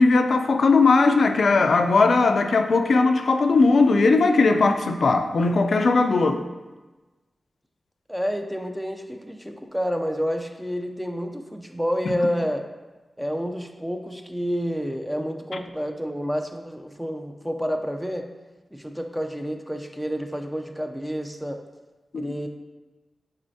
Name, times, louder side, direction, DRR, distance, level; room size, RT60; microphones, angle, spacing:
voice 1, 0.0-6.4 22.1-22.3, left 3 dB, 75° left, 0.4 m, -19 dB
voice 2, 8.1-12.6 13.2-18.3 18.7-21.6 22.2-22.5, equal, 5° right, 0.5 m, -29 dB
8.7 x 4.1 x 2.7 m
wide cardioid pair, 95°, 0 cm